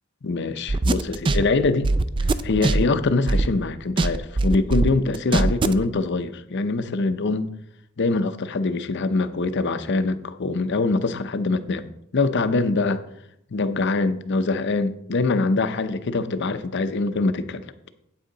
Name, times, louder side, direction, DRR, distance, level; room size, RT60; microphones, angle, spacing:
voice 1, 0.2-1.9 2.4-7.5 8.0-11.9 12.1-13.0 13.5-17.6, left 3 dB, 55° left, 11 dB, 0.6 m, -23 dB
sound 1, 0.7-3.6 4.0-5.8, right 2 dB, 25° right, 0.3 m, -21 dB
8.6 x 8.2 x 3.8 m, 0.74 s
head